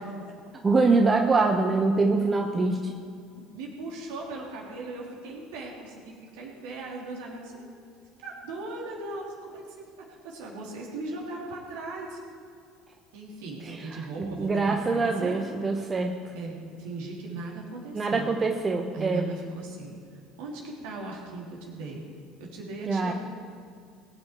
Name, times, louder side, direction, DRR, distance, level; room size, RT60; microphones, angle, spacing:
voice 1, 0.6-2.9 14.2-16.1 17.9-19.2 22.9-23.1, right 3 dB, 25° right, 3 dB, 1.1 m, -24 dB
voice 2, 3.4-7.7 8.2-12.2 13.1-15.4 16.3-18.3 18.9-19.9 20.4-22.0 22.4-23.1, right 2 dB, 60° right, -2 dB, 3.4 m, -38 dB
21.0 x 9.6 x 4.7 m, 2.3 s
figure-of-eight pair, 60°, 0 cm